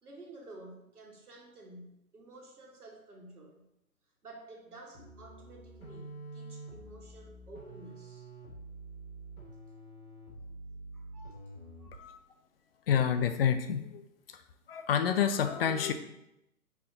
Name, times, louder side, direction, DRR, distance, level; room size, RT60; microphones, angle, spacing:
voice 1, 0.0-3.6 4.2-8.3 10.9-11.5 11.8-12.2, right 2 dB, 85° right, 1 dB, 1.7 m, -52 dB
sound 1, 4.9-12.1, right 2 dB, 70° left, 2.5 m, -47 dB
voice 2, 12.9-14.4 14.7-15.9, left 8 dB, 40° left, 9 dB, 0.6 m, -29 dB
5.6 x 4.9 x 3.9 m, 0.85 s
figure-of-eight pair, 125°, 44 cm